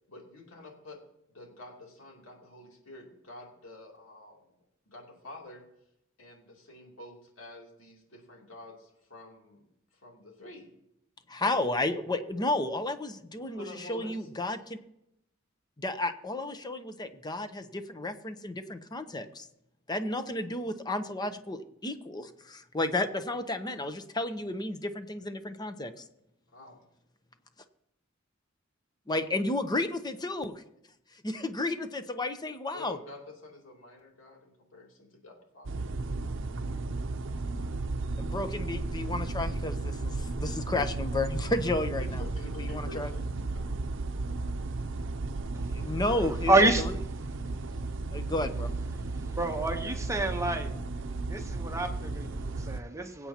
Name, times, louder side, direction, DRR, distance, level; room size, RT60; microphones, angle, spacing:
voice 1, 0.1-1.0 1.3-4.4 4.9-5.6 6.2-9.6 9.9-10.7 11.4-11.8 13.5-14.3 26.5-26.9 32.7-35.7 42.0-43.8, left 1 dB, 70° left, 0 dB, 2.9 m, -48 dB
voice 2, 11.3-14.8 15.8-19.5 19.9-26.0 29.1-30.6 31.2-33.0 38.2-42.2 42.6-43.1 45.7-46.9 48.1-48.7, left 2 dB, 20° left, 9 dB, 0.8 m, -32 dB
sound 1, 35.6-52.8, right 3 dB, 65° right, 0.7 m, -34 dB
voice 3, 46.5-46.9 49.4-50.7 51.3-53.3, right 2 dB, 15° right, 5 dB, 1.0 m, -27 dB
23.0 x 8.3 x 2.9 m, 0.81 s
head